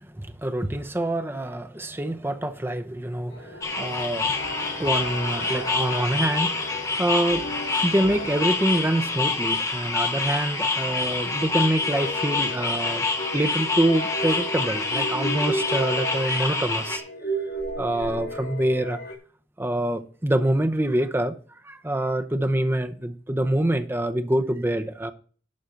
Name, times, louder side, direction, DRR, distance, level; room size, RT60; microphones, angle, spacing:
voice 1, 0.2-7.5 7.8-13.1 13.3-17.0 17.8-19.0 19.6-21.3 21.6-25.1, right 1 dB, 15° right, 0.7 m, -26 dB
sound 1, 3.3-19.1, equal, 65° left, 2.5 m, -35 dB
sound 2, 3.6-17.0, left 3 dB, 20° left, 1.9 m, -27 dB
11.5 x 4.3 x 7.8 m
head